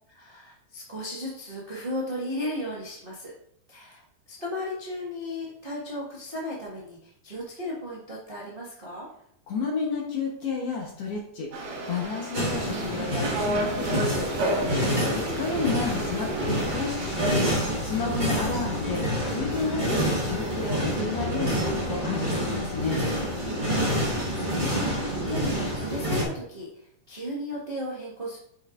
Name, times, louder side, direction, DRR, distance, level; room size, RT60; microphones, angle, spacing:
voice 1, 0.1-3.3 3.7-9.1 23.7-28.4, left 1 dB, 45° right, -6 dB, 0.6 m, -35 dB
voice 2, 9.5-11.5 11.9-14.3 14.8-17.5 17.8-23.0, left 4 dB, 60° left, -1 dB, 1.7 m, -31 dB
sound 1, 11.5-17.3, right 1 dB, 80° right, 3.5 m, -31 dB
sound 2, 12.3-26.2, equal, 25° right, 1.0 m, -28 dB
8.7 x 5.6 x 2.5 m, 0.70 s
omnidirectional pair, 3.8 m